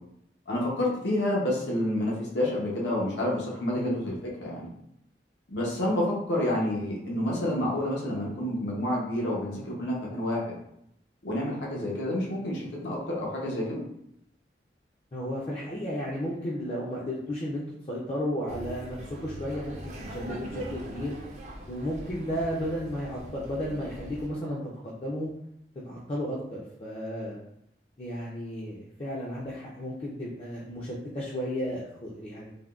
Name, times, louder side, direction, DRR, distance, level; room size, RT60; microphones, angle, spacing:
voice 1, 0.5-4.1 4.4-4.7 5.5-10.5 11.2-13.8, left 1 dB, 85° left, -4 dB, 0.8 m, -29 dB
voice 2, 15.1-21.2 21.7-25.3 25.8-27.4 28.0-32.5, equal, 35° left, -6 dB, 0.4 m, -33 dB
Laughter, 18.5-24.3, right 1 dB, 40° right, 0.4 m, -41 dB
3.4 x 2.2 x 2.3 m, 0.74 s
head